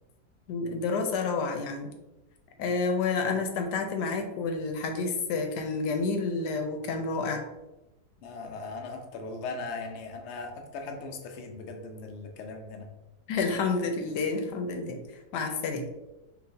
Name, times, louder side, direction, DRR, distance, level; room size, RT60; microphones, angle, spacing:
voice 1, 0.5-1.9 2.6-7.4 13.3-15.0 15.3-15.8, left 4 dB, 85° left, 4 dB, 1.2 m, -29 dB
voice 2, 8.2-12.9, left 3 dB, 60° left, 3 dB, 0.7 m, -39 dB
4.8 x 3.2 x 2.6 m, 1.0 s
omnidirectional pair, 1.8 m